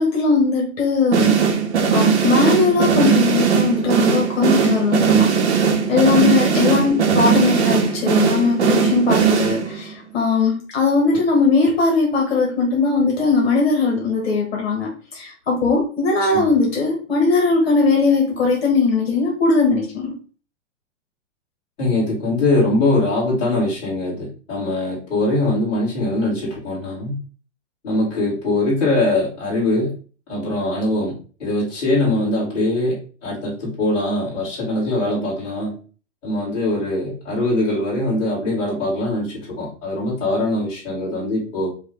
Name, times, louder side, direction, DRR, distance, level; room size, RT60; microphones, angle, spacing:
voice 1, 0.0-1.3 1.9-5.3 5.9-20.1, left 4 dB, 55° left, 0 dB, 1.4 m, -19 dB
sound 1, 1.1-9.9, right 6 dB, 65° right, 1.0 m, -18 dB
voice 2, 21.8-27.2 27.8-29.9 30.3-31.1 31.4-35.7 36.2-41.7, left 2 dB, 15° left, -10 dB, 2.0 m, -22 dB
5.7 x 2.4 x 3.4 m, 0.38 s
hypercardioid pair, 180°, 37 cm